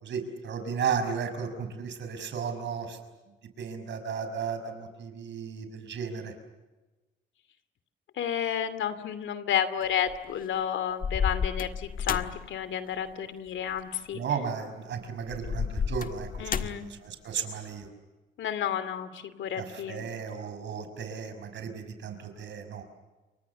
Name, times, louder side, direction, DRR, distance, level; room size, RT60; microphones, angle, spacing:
voice 1, 0.0-3.0 3.6-6.3 14.1-17.9 19.6-22.8, right 6 dB, 65° right, 8 dB, 5.9 m, -34 dB
voice 2, 8.1-14.2 16.4-16.9 18.4-20.1, left 9 dB, 75° left, 13 dB, 2.7 m, -31 dB
sound 1, 9.8-10.3 11.0-12.5 13.8-14.0 15.3-17.0, left 6 dB, 45° left, 1.5 m, -31 dB
29.5 x 24.0 x 7.0 m, 1.1 s
cardioid pair, 90°, 20 cm